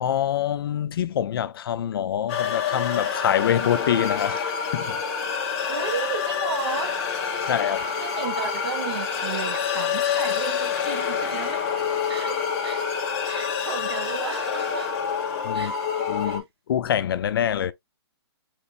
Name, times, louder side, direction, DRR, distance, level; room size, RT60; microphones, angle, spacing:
voice 1, 0.0-5.0 7.5-7.8 15.4-15.7 16.1-17.7, left 10 dB, 55° left, 0.4 m, -25 dB
sound 1, 2.3-16.4, left 7 dB, 30° left, 1.1 m, -27 dB
voice 2, 5.7-6.9 7.6-7.7 8.0-11.6 12.1-12.8 13.2-14.9 15.5-15.8 16.2-16.4, right 6 dB, 65° right, 1.6 m, -33 dB
5.1 x 3.0 x 2.4 m
hypercardioid pair, 155°, 14 cm